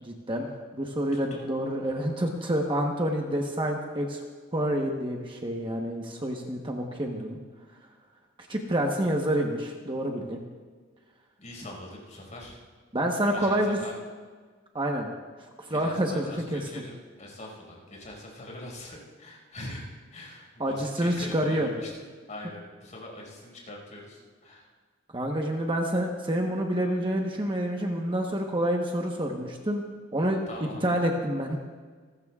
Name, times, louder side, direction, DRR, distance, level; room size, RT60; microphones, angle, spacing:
voice 1, 0.0-4.2 4.5-7.4 8.5-10.4 12.9-13.8 14.7-15.1 15.7-16.8 20.6-21.7 25.1-29.8 30.1-30.4 30.8-31.6, right 1 dB, 25° right, 1 dB, 1.1 m, -28 dB
voice 2, 1.1-1.5 11.4-12.6 13.3-14.0 15.7-21.9 22.3-24.7 30.5-30.8, left 1 dB, 40° left, -1 dB, 5.3 m, -42 dB
28.0 x 14.0 x 2.4 m, 1.5 s
head